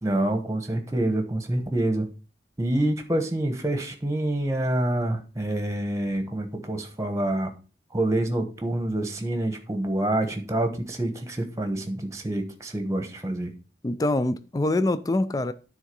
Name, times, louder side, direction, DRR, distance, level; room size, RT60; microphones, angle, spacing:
voice 1, 0.0-2.1 2.6-7.5 7.9-13.5, right 1 dB, 15° right, 1.1 m, -27 dB
voice 2, 13.8-15.5, left 2 dB, 20° left, 0.4 m, -24 dB
9.8 x 3.8 x 5.4 m
head